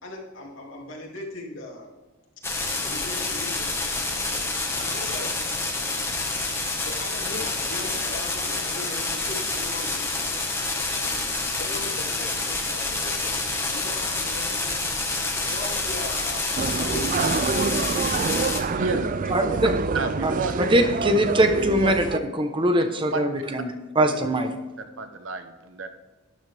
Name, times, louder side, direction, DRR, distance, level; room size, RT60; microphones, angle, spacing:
voice 1, 0.0-1.9 2.7-3.9 4.7-5.4 6.8-10.6 11.5-13.3 13.7-14.8 15.4-16.4 16.8-18.1 18.7-19.6, left 2 dB, 80° left, -2 dB, 2.7 m, -38 dB
sound 1, 2.4-18.6, left 3 dB, 15° left, 1.5 m, -28 dB
sound 2, 16.6-22.2, right 4 dB, 45° right, 0.4 m, -27 dB
voice 2, 18.8-19.6 19.9-20.5 21.8-21.9 23.1-23.3 24.0-24.1 24.8-25.9, right 3 dB, 75° right, 8 dB, 1.1 m, -31 dB
voice 3, 19.3-19.7 20.2-20.3 20.6-22.1 22.3-24.5, right 1 dB, 25° right, 6 dB, 1.0 m, -22 dB
12.0 x 10.5 x 3.5 m, 1.2 s
head